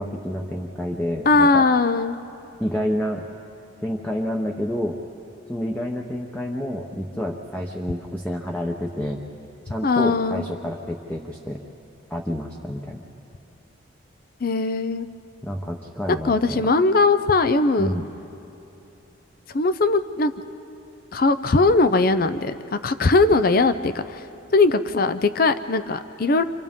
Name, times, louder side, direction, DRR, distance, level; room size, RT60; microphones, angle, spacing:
voice 1, 0.0-1.6 2.6-3.2 3.8-5.0 5.5-9.2 9.6-11.6 12.1-13.0 15.4-16.7 17.8-18.1, equal, 5° left, 0 dB, 0.8 m, -29 dB
voice 2, 1.3-2.2 9.8-10.4 14.4-15.1 16.2-17.9 19.5-20.3 21.1-24.2 24.5-26.4, left 3 dB, 45° left, 11 dB, 0.5 m, -20 dB
29.5 x 26.5 x 3.7 m, 3.0 s
head